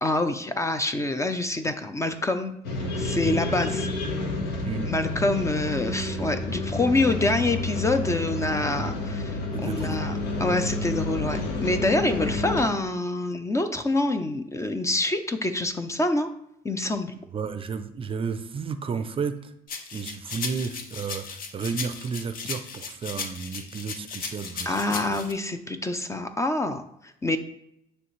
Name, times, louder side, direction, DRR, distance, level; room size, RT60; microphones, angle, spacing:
voice 1, 0.0-2.5 3.0-3.9 4.9-8.9 9.6-10.1 10.4-16.3 16.6-17.1 24.7-27.4, left 2 dB, 15° left, 8 dB, 0.5 m, -26 dB
sound 1, 2.6-12.6, left 2 dB, 85° left, 1.2 m, -29 dB
voice 2, 9.5-10.0 17.1-19.5 19.9-25.2, right 5 dB, 30° right, 9 dB, 0.5 m, -32 dB
sound 2, 19.7-25.3, left 5 dB, 55° left, 0.8 m, -36 dB
9.6 x 3.3 x 3.1 m, 0.78 s
cardioid pair, 110°, 17 cm